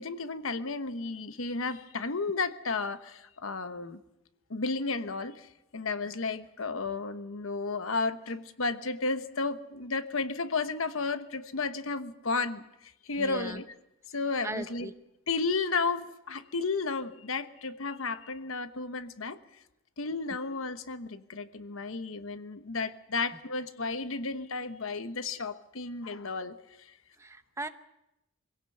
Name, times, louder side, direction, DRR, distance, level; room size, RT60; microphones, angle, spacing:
voice 1, 0.0-4.0 4.5-13.6 14.1-14.9 15.3-19.4 20.0-26.9, left 4 dB, 75° left, 11 dB, 1.1 m, -33 dB
voice 2, 13.2-13.6 14.4-14.9 27.2-27.7, right 2 dB, 15° right, 9 dB, 0.8 m, -38 dB
23.0 x 17.0 x 7.8 m, 0.88 s
head